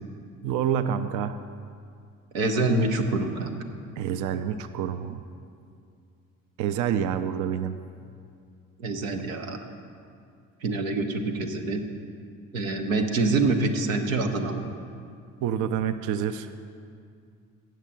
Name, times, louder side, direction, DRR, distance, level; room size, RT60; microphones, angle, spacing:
voice 1, 0.4-1.4 4.0-5.2 6.6-7.8 15.4-16.5, right 9 dB, 50° right, 10 dB, 0.5 m, -27 dB
voice 2, 2.3-3.6 8.8-9.6 10.6-11.8 12.5-14.7, right 3 dB, 80° right, 4 dB, 0.8 m, -26 dB
7.5 x 7.3 x 6.8 m, 2.3 s
figure-of-eight pair, 50°, 40 cm